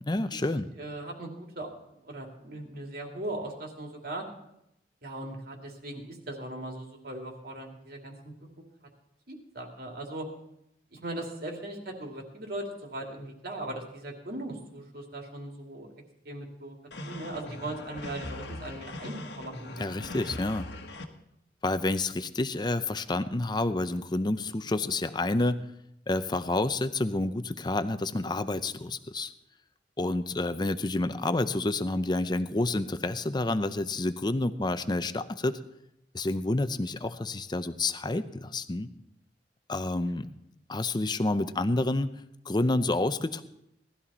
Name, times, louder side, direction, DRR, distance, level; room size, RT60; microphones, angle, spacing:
voice 1, 0.0-0.7 19.8-20.7 21.6-25.6 26.1-29.3 30.0-35.6 36.1-38.9 39.7-40.3 40.7-42.1 42.5-43.4, left 2 dB, 25° left, 11 dB, 0.6 m, -29 dB
voice 2, 0.8-1.7 2.0-4.3 5.0-8.3 9.3-10.3 10.9-15.9 16.2-16.8 17.0-20.2 40.1-40.3, right 1 dB, 60° right, 2 dB, 2.6 m, -39 dB
sound 1, 16.9-21.0, left 2 dB, 75° left, 1.4 m, -40 dB
18.5 x 12.5 x 4.3 m, 0.82 s
head